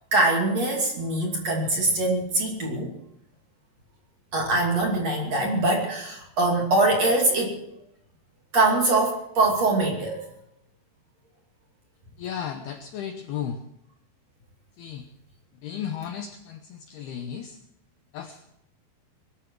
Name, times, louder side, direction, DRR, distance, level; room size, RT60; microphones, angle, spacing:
voice 1, 0.1-3.0 4.3-7.6 8.5-10.2, right 2 dB, 40° right, 0 dB, 3.0 m, -23 dB
voice 2, 12.2-13.6 14.8-15.1 15.6-17.6 18.1-18.4, left 8 dB, 90° left, 6 dB, 2.2 m, -34 dB
22.5 x 13.5 x 4.7 m, 0.79 s
omnidirectional pair, 6.0 m